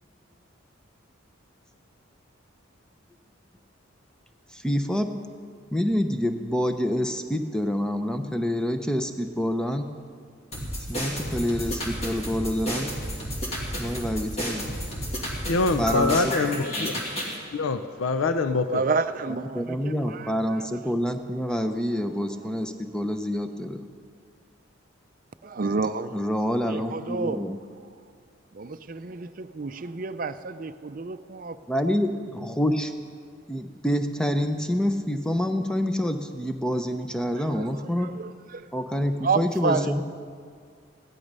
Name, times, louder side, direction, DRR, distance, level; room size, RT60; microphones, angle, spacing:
voice 1, 4.5-5.1 5.7-9.9 10.9-12.9 13.8-14.7 15.8-17.0 19.5-23.8 26.1-27.6 31.7-32.9 33.5-38.1 38.7-40.0, equal, 5° left, 7 dB, 0.6 m, -27 dB
sound 1, 10.5-17.4, equal, 30° left, 2.4 m, -32 dB
voice 2, 15.5-16.9 17.5-18.8, left 3 dB, 80° left, 9 dB, 0.5 m, -24 dB
sound 2, 15.9-18.4 20.0-20.1, right 1 dB, 50° left, 1.4 m, -38 dB
voice 3, 18.7-20.9 25.4-26.2 26.7-27.4 28.5-31.9 37.4-38.6 39.2-39.9, right 4 dB, 40° right, 11 dB, 0.5 m, -30 dB
16.0 x 12.0 x 5.4 m, 2.1 s
head